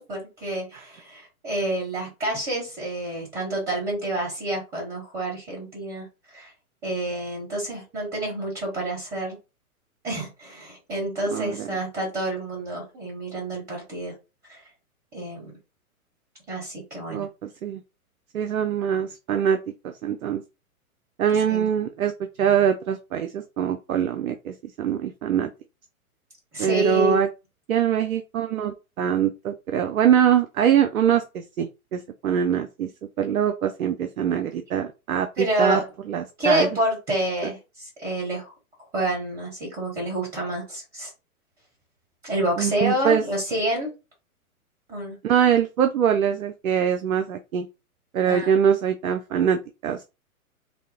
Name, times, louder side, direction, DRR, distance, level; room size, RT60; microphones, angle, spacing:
voice 1, 0.0-6.1 6.3-6.5 6.8-9.4 10.0-14.1 14.5-14.6 15.1-15.5 16.5-17.3 21.5-21.6 26.5-27.2 35.4-35.9 36.4-38.5 38.9-41.1 42.2-43.9 44.9-45.2 48.3-48.5, right 1 dB, 20° right, -2 dB, 1.6 m, -28 dB
voice 2, 11.3-11.8 17.1-17.8 18.3-19.6 19.8-20.4 21.2-22.1 22.4-25.5 26.6-27.3 27.7-32.9 33.2-35.8 36.1-36.7 42.6-43.2 45.2-47.7 48.1-50.0, right 9 dB, 70° right, 7 dB, 0.6 m, -23 dB
3.5 x 2.0 x 3.7 m, 0.28 s
figure-of-eight pair, 115°, 44 cm